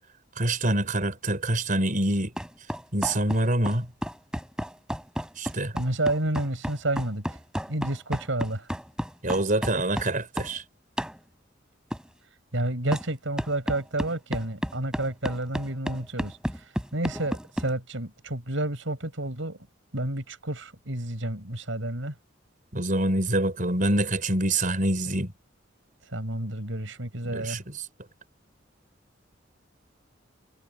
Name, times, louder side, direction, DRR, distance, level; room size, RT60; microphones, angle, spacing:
voice 1, 0.4-2.3 2.9-3.9 5.4-5.7 9.2-10.6 22.7-25.3 27.3-27.6, right 1 dB, 45° right, 5.4 m, -25 dB
sound 1, 2.4-10.6 11.0-11.2 11.9-12.1 12.9-13.1 13.4-17.7, equal, 5° right, 7.9 m, -32 dB
voice 2, 5.7-7.2 7.7-8.7 12.5-16.4 16.9-19.6 19.9-22.1 26.1-27.6, right 1 dB, 80° right, 5.0 m, -30 dB
head